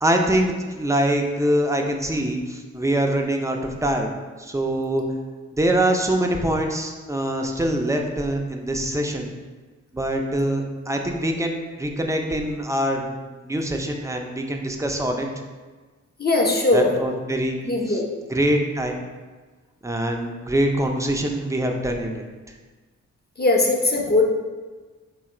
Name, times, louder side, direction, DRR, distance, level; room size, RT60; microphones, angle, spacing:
voice 1, 0.0-4.1 4.4-5.0 5.5-9.3 9.9-15.3 16.7-17.6 18.3-19.0 19.8-22.2, right 1 dB, 10° right, 2 dB, 0.5 m, -24 dB
voice 2, 16.2-17.0 17.6-18.1 23.4-24.2, left 2 dB, 35° left, 0 dB, 0.7 m, -19 dB
4.8 x 2.3 x 4.3 m, 1.4 s
wide cardioid pair, 85°, 29 cm